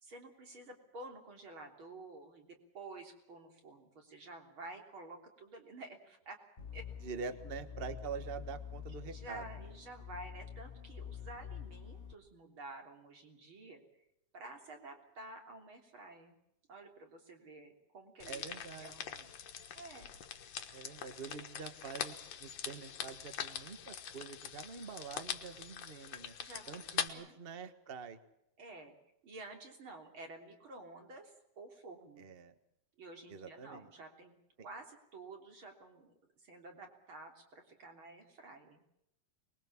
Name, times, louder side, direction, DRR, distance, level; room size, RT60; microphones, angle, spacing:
voice 1, 0.0-6.4 6.7-6.9 9.0-13.8 14.3-16.4 16.7-19.0 19.7-20.1 26.4-27.5 28.6-28.9 29.2-32.3 33.0-34.3 34.6-38.8, right 2 dB, 40° right, 4 dB, 4.0 m, -51 dB
sound 1, 6.6-12.1, left 8 dB, 45° left, 0.9 m, -47 dB
voice 2, 7.0-9.4 18.2-19.3 20.7-22.1 22.4-26.3 26.7-28.2 32.2-32.5 33.3-33.9, right 6 dB, 90° right, 11 dB, 0.5 m, -46 dB
sound 2, 18.2-27.1, left 8 dB, 65° left, 2.5 m, -43 dB
24.5 x 21.5 x 7.2 m, 0.82 s
omnidirectional pair, 3.4 m